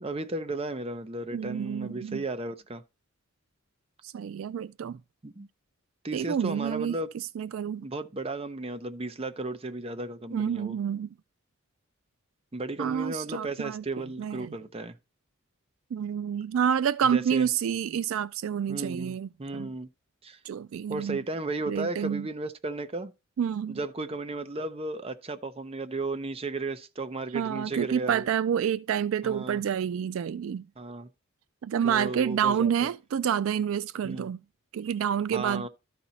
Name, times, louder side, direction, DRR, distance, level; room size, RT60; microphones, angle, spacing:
voice 1, 0.0-2.8 5.2-5.5 6.0-7.1 7.7-10.8 12.5-15.0 17.0-17.4 18.7-19.9 20.2-20.4 20.9-23.1 23.7-28.3 29.2-29.6 30.8-31.1 31.8-32.9 34.0-34.3 35.3-35.7, right 2 dB, 30° right, 0.6 m, -34 dB
voice 2, 1.3-2.2 4.0-5.0 6.1-7.9 10.3-11.1 12.8-14.5 15.9-19.7 20.4-21.2 21.7-22.3 23.4-23.8 27.3-30.7 31.6-34.4 34.7-35.7, right 8 dB, 70° right, 0.3 m, -29 dB
13.0 x 4.3 x 4.0 m
head